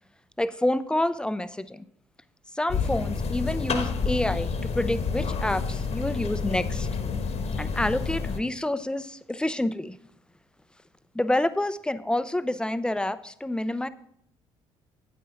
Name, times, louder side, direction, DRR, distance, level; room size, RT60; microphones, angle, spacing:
voice 1, 0.4-1.8 2.5-6.9 7.6-10.0 11.1-13.9, left 1 dB, 5° left, 14 dB, 0.6 m, -28 dB
sound 1, 2.7-8.4, left 5 dB, 50° left, 1.2 m, -29 dB
9.4 x 9.4 x 3.8 m, 0.70 s
figure-of-eight pair, 50°, 14 cm